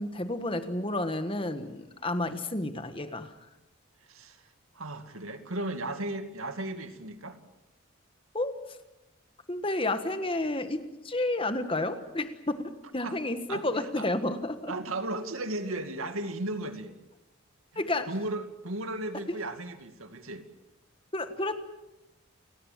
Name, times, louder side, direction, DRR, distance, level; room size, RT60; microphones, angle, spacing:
voice 1, 0.0-3.3 8.3-8.6 9.5-12.6 12.9-14.7 17.7-18.1 21.1-21.6, left 2 dB, 25° left, 9 dB, 1.5 m, -31 dB
voice 2, 4.1-4.4 4.7-7.4 13.0-13.2 13.5-14.1 14.7-16.9 17.7-20.4, right 2 dB, 80° right, 8 dB, 2.3 m, -35 dB
29.5 x 18.0 x 7.5 m, 0.94 s
head